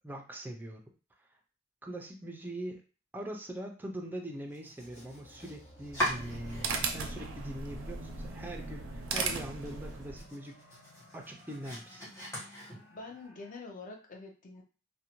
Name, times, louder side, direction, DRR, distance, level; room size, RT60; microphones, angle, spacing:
voice 1, 0.0-0.8 1.8-2.8 3.1-10.6 11.1-12.0, right 1 dB, 10° right, 2 dB, 0.4 m, -42 dB
Domestic sounds home sounds, 4.5-7.0 7.4-8.1 8.5-8.6 9.0-9.1 9.5-13.2, equal, 15° left, 1.1 m, -40 dB
sound 1, 4.8-13.6, equal, 85° left, 1.3 m, -57 dB
sound 2, 5.8-10.3, right 4 dB, 85° right, 0.5 m, -37 dB
voice 2, 12.9-14.6, left 3 dB, 45° left, 2 dB, 0.6 m, -46 dB
2.6 x 2.1 x 2.9 m, 0.35 s
head